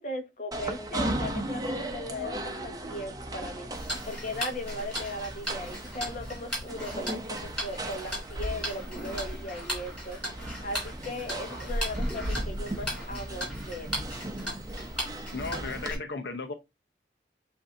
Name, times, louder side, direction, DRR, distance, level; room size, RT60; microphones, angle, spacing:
voice 1, 0.0-3.7 4.0-10.2 10.6-14.0, left 1 dB, 45° left, 1.1 m, -38 dB
sound 1, 0.5-15.9, right 1 dB, 20° right, 0.7 m, -36 dB
Tick-tock, 3.7-15.9, equal, 5° left, 3.0 m, -37 dB
voice 2, 15.3-16.5, left 3 dB, 80° left, 0.8 m, -35 dB
8.0 x 2.7 x 2.4 m
head